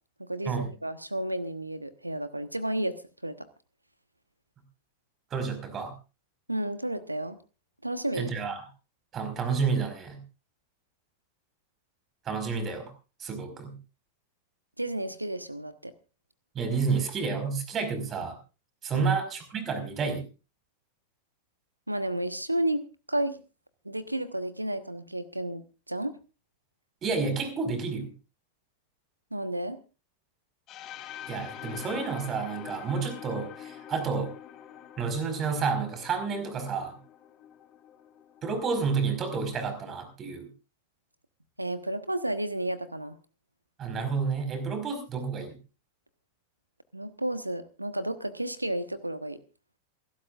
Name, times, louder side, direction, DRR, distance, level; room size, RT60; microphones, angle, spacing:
voice 1, 0.2-3.0 3.2-3.5 6.5-7.4 7.8-8.3 14.8-15.9 18.9-19.1 21.9-22.8 23.1-23.4 23.8-26.2 29.3-29.8 41.6-43.1 46.9-49.4, right 1 dB, 85° right, 13 dB, 1.2 m, -32 dB
voice 2, 5.3-5.9 8.1-8.6 9.1-10.2 12.2-12.9 13.2-13.8 16.5-18.4 18.8-20.2 27.0-28.1 31.3-34.3 35.0-36.9 38.4-40.5 43.8-45.6, right 5 dB, 25° right, 8 dB, 5.1 m, -30 dB
sound 1, 30.7-38.5, left 10 dB, 35° left, 3.1 m, -45 dB
27.5 x 13.0 x 2.5 m, 0.33 s
figure-of-eight pair, 90°, 0 cm